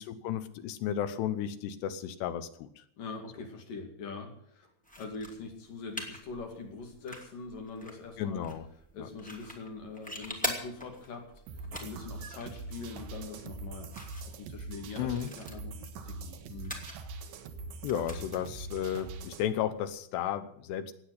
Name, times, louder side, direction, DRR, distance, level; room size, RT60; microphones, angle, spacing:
voice 1, 0.0-2.7 8.2-8.7 9.0-9.1 15.0-15.3 17.8-20.9, left 10 dB, 85° left, 11 dB, 3.2 m, -33 dB
voice 2, 3.0-4.7 5.0-8.5 8.9-11.3 11.8-13.9 14.2-16.8, left 4 dB, 55° left, 3 dB, 3.8 m, -43 dB
sound 1, 4.8-20.0, equal, 5° left, 1.3 m, -45 dB
sound 2, 11.5-19.5, right 3 dB, 70° right, 2.7 m, -43 dB
18.5 x 8.1 x 8.4 m, 0.68 s
omnidirectional pair, 4.8 m